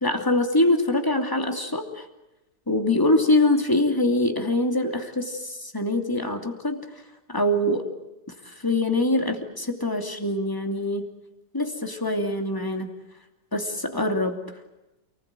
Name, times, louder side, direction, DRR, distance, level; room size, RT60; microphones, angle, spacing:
voice 1, 0.0-2.1 2.7-6.8 7.3-7.9 8.4-11.1 11.5-12.9 13.5-14.4, left 1 dB, 10° left, 4 dB, 2.8 m, -24 dB
29.0 x 20.5 x 9.1 m, 0.97 s
omnidirectional pair, 1.8 m